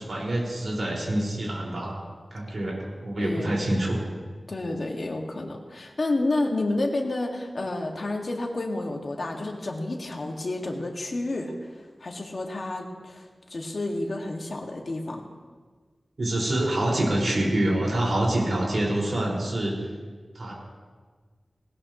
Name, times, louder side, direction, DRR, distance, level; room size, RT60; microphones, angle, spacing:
voice 1, 0.0-2.0 2.3-2.8 3.0-4.0 16.2-19.7 20.3-20.6, right 1 dB, 65° right, -4 dB, 5.5 m, -26 dB
voice 2, 3.2-3.5 4.5-11.5 12.0-13.2 13.5-15.2, left 2 dB, 60° left, 1 dB, 2.1 m, -30 dB
20.0 x 18.5 x 3.2 m, 1.4 s
wide cardioid pair, 90°, 0 cm